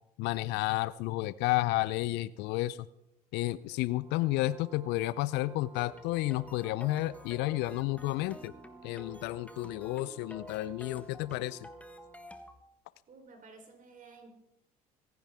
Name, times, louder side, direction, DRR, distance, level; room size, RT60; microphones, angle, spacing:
voice 1, 0.2-2.9 3.3-8.5 8.8-11.6, left 17 dB, 60° left, 18 dB, 0.6 m, -31 dB
Brass instrument, 3.7-12.4, right 6 dB, 20° right, 4.5 m, -57 dB
sound 1, 5.8-12.6, left 1 dB, 5° left, 1.4 m, -50 dB
voice 2, 13.1-14.3, right 4 dB, 40° right, 5 dB, 3.7 m, -53 dB
25.0 x 10.5 x 3.6 m, 0.84 s
hypercardioid pair, 65°, 20 cm